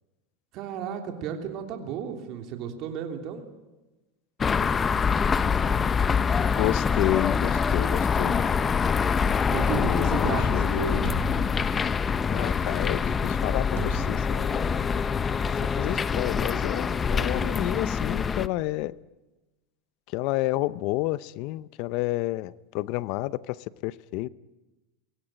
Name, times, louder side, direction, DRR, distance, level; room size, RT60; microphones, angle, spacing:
voice 1, 0.5-3.5 9.5-11.1 17.1-17.6, right 7 dB, 50° right, 3.1 m, -33 dB
sound 1, 4.4-18.5, left 6 dB, 25° left, 0.8 m, -25 dB
sound 2, 5.2-16.3, right 5 dB, 25° right, 5.5 m, -52 dB
voice 2, 6.5-8.4 9.8-11.1 12.3-14.9 15.8-18.9 20.1-24.3, left 18 dB, 60° left, 0.7 m, -30 dB
sound 3, 11.0-12.2 13.8-14.9, right 15 dB, 70° right, 0.9 m, -41 dB
23.5 x 17.5 x 9.0 m
supercardioid pair, 115°, 0 cm